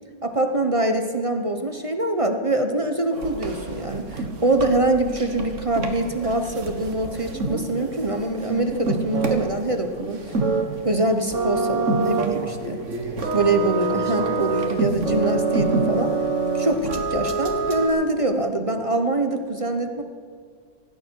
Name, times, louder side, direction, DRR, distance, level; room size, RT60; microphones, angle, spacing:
voice 1, 0.2-10.3 10.8-12.8 13.3-16.1 16.5-20.0, right 2 dB, 25° right, 6 dB, 0.7 m, -24 dB
sound 1, 3.1-17.9, right 3 dB, 40° right, 1.9 m, -26 dB
18.5 x 16.5 x 4.7 m, 2.1 s
omnidirectional pair, 2.0 m